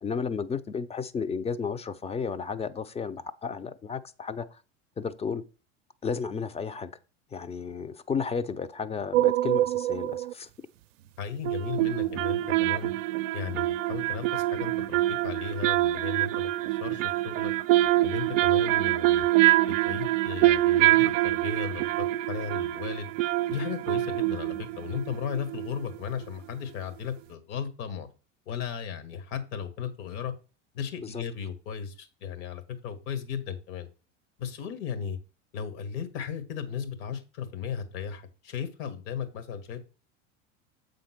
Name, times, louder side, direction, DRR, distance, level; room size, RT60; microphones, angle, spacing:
voice 1, 0.0-4.6 5.0-5.4 6.0-6.9 7.3-10.5 31.0-31.2, left 5 dB, 15° left, 0.6 m, -33 dB
sound 1, 9.1-10.3 11.4-26.0 26.2-26.3, right 16 dB, 75° right, 0.5 m, -25 dB
voice 2, 11.2-12.9 13.3-16.5 16.8-17.5 18.0-19.3 19.8-23.1 23.5-28.1 28.5-30.3 30.7-33.9 34.4-35.2 35.5-39.8, left 7 dB, 60° left, 1.8 m, -35 dB
7.6 x 3.8 x 5.9 m
hypercardioid pair, 90°, 39 cm